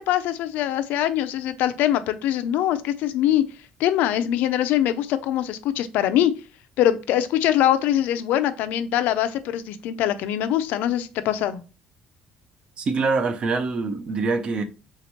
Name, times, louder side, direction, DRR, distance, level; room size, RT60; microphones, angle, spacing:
voice 1, 0.1-3.4 3.8-6.3 6.8-11.6, left 11 dB, 70° left, 0.4 m, -23 dB
voice 2, 12.8-14.6, right 4 dB, 30° right, 0.4 m, -24 dB
3.4 x 2.9 x 4.1 m
cardioid pair, 175°, 3 cm